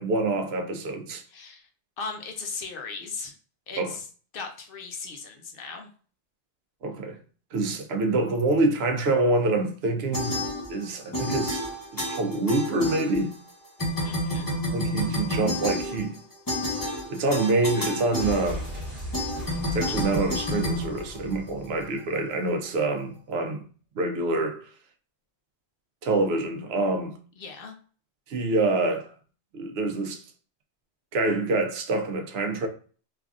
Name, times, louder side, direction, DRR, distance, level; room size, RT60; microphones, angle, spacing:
voice 1, 0.0-1.2 3.8-3.9 6.8-7.2 7.5-11.7 11.9-13.4 14.7-16.2 17.1-18.7 19.7-23.6 24.0-24.7 26.0-27.2 28.3-29.1 29.5-30.2 31.1-32.7, right 2 dB, 70° right, 0.8 m, -26 dB
voice 2, 1.3-1.7 2.0-3.3 3.7-4.1 4.3-5.9 14.0-14.5 27.4-27.7, left 4 dB, 60° left, 0.7 m, -37 dB
sound 1, 10.1-10.9 11.1-13.5 13.8-21.7, equal, 25° left, 0.6 m, -30 dB
sound 2, 18.2-22.0 22.2-22.3, equal, 20° right, 1.1 m, -37 dB
3.2 x 2.3 x 2.4 m
omnidirectional pair, 1.1 m